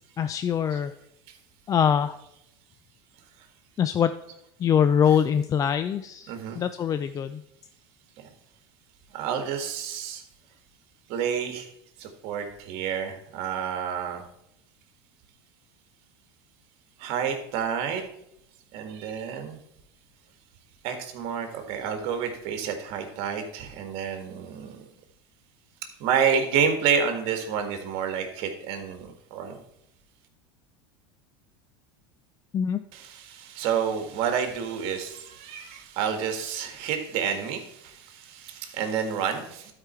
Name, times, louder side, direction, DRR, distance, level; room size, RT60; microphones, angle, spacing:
voice 1, 0.2-0.9 1.7-2.2 3.8-4.1 4.6-7.4 32.5-32.8, left 8 dB, 30° left, 11 dB, 0.4 m, -23 dB
voice 2, 6.3-6.6 9.1-10.2 11.1-11.7 12.0-14.2 17.0-18.1 18.7-19.6 20.8-24.8 26.0-29.6 32.9-39.7, right 7 dB, 60° right, 6 dB, 1.7 m, -29 dB
12.0 x 4.9 x 4.4 m, 0.79 s
supercardioid pair, 105°, 12 cm